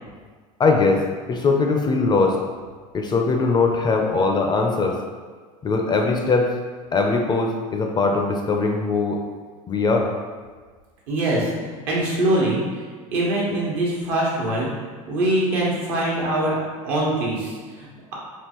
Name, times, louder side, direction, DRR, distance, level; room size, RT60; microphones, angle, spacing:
voice 1, 0.6-2.4 2.9-5.0 5.6-6.5 6.9-9.2 9.7-10.1, left 3 dB, 25° left, 2 dB, 0.4 m, -21 dB
voice 2, 11.1-12.8 13.1-16.6 16.8-18.1, right 1 dB, 65° right, -4 dB, 1.1 m, -23 dB
3.6 x 2.4 x 2.9 m, 1.5 s
hypercardioid pair, 95°, 18 cm